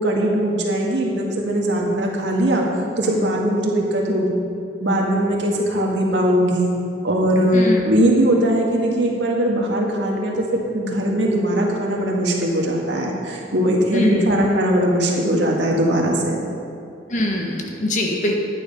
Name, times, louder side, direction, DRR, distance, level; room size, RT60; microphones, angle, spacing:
voice 1, 0.0-2.7 3.0-4.4 4.8-6.7 7.0-10.4 10.7-16.5, right 1 dB, 90° right, -2 dB, 1.9 m, -20 dB
voice 2, 13.9-14.3 17.1-18.4, left 1 dB, 45° left, 1 dB, 1.5 m, -22 dB
11.0 x 9.4 x 5.5 m, 2.6 s
head